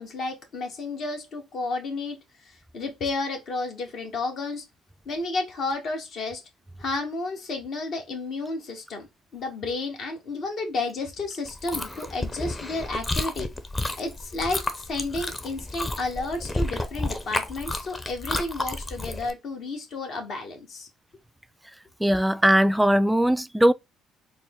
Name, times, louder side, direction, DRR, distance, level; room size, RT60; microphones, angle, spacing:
voice 1, 0.0-2.2 2.4-4.6 5.0-6.4 6.8-9.1 9.3-13.5 14.0-20.9, left 3 dB, 60° left, 1.4 m, -31 dB
Chewing mastication, 11.5-19.3, left 2 dB, 25° left, 0.8 m, -31 dB
voice 2, 22.0-23.7, equal, 5° right, 0.3 m, -20 dB
4.2 x 2.2 x 3.6 m
supercardioid pair, 65°, 0 cm